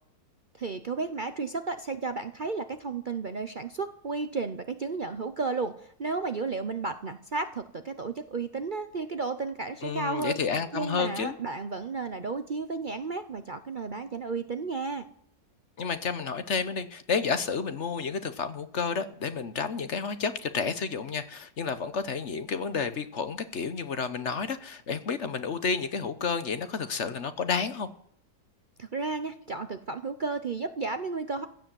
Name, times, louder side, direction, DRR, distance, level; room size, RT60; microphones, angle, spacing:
voice 1, 0.5-10.4 10.7-15.0 28.8-31.5, right 4 dB, 45° right, 9 dB, 0.7 m, -33 dB
voice 2, 9.8-11.3 15.8-27.9, left 5 dB, 50° left, 11 dB, 1.1 m, -31 dB
16.0 x 10.5 x 7.6 m, 0.66 s
omnidirectional pair, 1.6 m